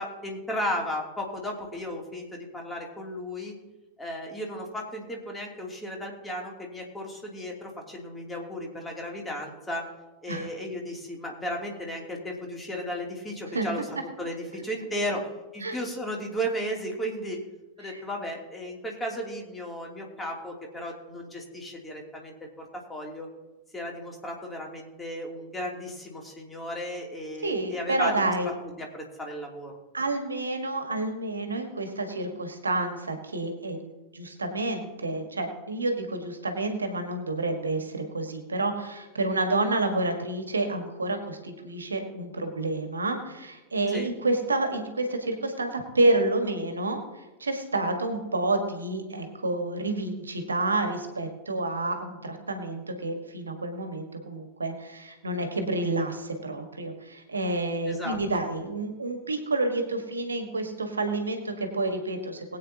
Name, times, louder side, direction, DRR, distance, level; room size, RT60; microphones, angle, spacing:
voice 1, 0.0-3.6 4.0-9.9 10.2-13.9 14.2-17.4 17.8-23.3 23.7-29.7 43.9-44.1 57.9-58.4, equal, 10° left, -1 dB, 2.9 m, -35 dB
voice 2, 27.4-28.5 29.9-47.0 47.4-62.6, right 2 dB, 75° right, 6 dB, 1.6 m, -29 dB
21.0 x 8.7 x 2.9 m, 1.1 s
figure-of-eight pair, 90°, 0 cm